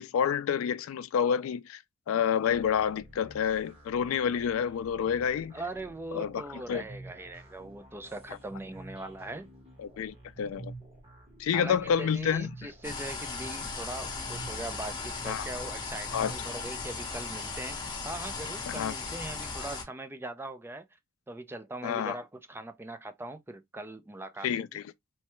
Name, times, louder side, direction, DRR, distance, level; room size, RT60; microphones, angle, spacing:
voice 1, 0.0-5.5 6.1-6.8 9.8-10.7 11.4-12.5 15.3-15.5 16.1-16.3 18.7-18.9 21.8-22.2 24.4-24.9, left 8 dB, 75° left, 0.3 m, -29 dB
sound 1, 2.5-17.3, right 2 dB, 30° right, 1.2 m, -50 dB
voice 2, 5.5-9.5 11.5-20.9 21.3-24.5, right 2 dB, 10° right, 0.3 m, -41 dB
sound 2, 12.8-19.8, left 4 dB, 20° left, 0.9 m, -37 dB
3.2 x 2.2 x 2.9 m
head